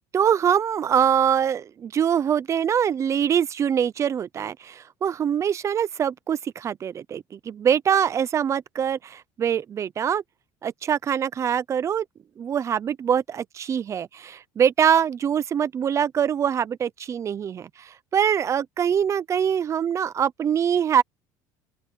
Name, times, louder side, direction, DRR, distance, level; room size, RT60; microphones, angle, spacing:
voice 1, 0.1-10.2 10.6-12.0 12.4-17.7 18.1-21.0, right 8 dB, 30° right, 0.8 m, -23 dB
open air
cardioid pair, 125°, 9 cm